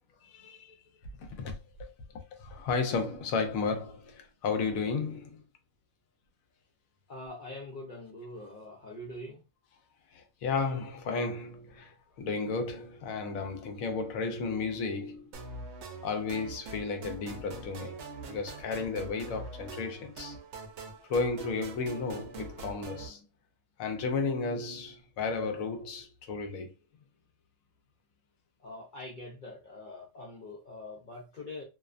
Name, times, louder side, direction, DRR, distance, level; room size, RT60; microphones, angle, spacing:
voice 1, 0.2-0.8 1.2-5.4 10.1-15.3 16.0-18.0 18.3-20.4 21.0-23.3 23.8-26.7, left 4 dB, 80° left, 1.0 m, -33 dB
voice 2, 7.1-9.4 28.6-31.6, left 1 dB, 65° left, 0.5 m, -44 dB
sound 1, 15.3-23.1, right 3 dB, 65° right, 0.8 m, -44 dB
2.7 x 2.1 x 2.4 m
omnidirectional pair, 1.4 m